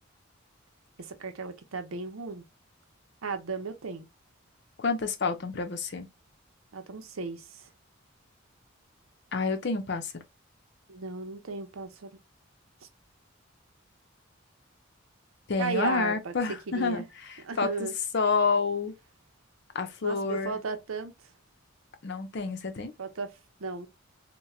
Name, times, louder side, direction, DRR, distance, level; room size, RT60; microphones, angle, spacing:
voice 1, 1.0-2.4 3.2-4.1 6.7-7.7 10.9-12.2 15.6-16.3 16.7-17.1 17.4-17.9 20.0-21.1 23.0-23.9, right 4 dB, 90° right, 0.7 m, -35 dB
voice 2, 4.8-6.1 9.3-10.2 15.5-17.0 17.6-17.9 18.1-18.9 19.7-20.6 22.0-22.9, left 4 dB, 55° left, 0.6 m, -28 dB
4.2 x 2.2 x 2.3 m
head